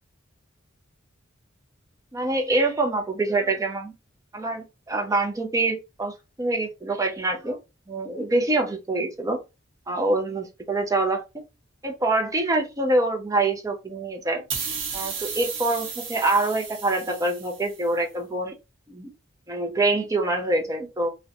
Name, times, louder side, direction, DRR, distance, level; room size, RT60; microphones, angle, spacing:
voice 1, 2.1-3.9 4.3-7.6 7.9-9.4 9.9-11.4 11.8-14.4 14.9-18.6 18.9-19.1 19.5-21.1, right 2 dB, 15° right, 0.5 m, -25 dB
sound 1, 14.5-17.9, right 5 dB, 75° right, 0.8 m, -34 dB
2.6 x 2.1 x 2.6 m
head